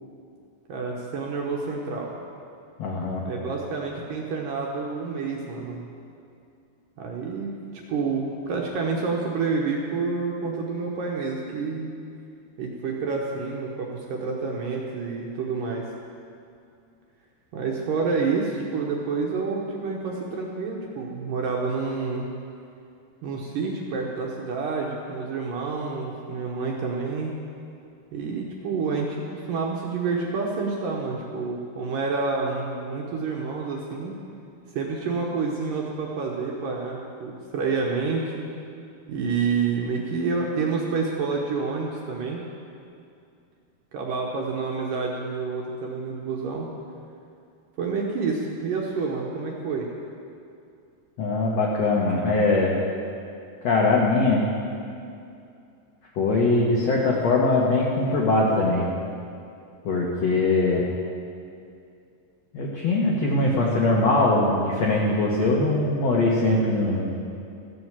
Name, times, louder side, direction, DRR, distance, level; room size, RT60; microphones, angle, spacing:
voice 1, 0.7-2.1 3.2-5.9 7.0-11.9 12.6-15.8 17.5-22.2 23.2-27.3 28.1-34.2 34.7-38.5 39.1-42.4 43.9-46.7 47.8-49.9, right 4 dB, 70° right, -1 dB, 2.1 m, -28 dB
voice 2, 2.8-3.2 51.2-52.8 53.6-54.5 56.1-58.9 59.8-60.8 62.5-67.0, left 2 dB, 85° left, -3 dB, 1.4 m, -21 dB
14.5 x 7.8 x 7.3 m, 2.5 s
omnidirectional pair, 5.0 m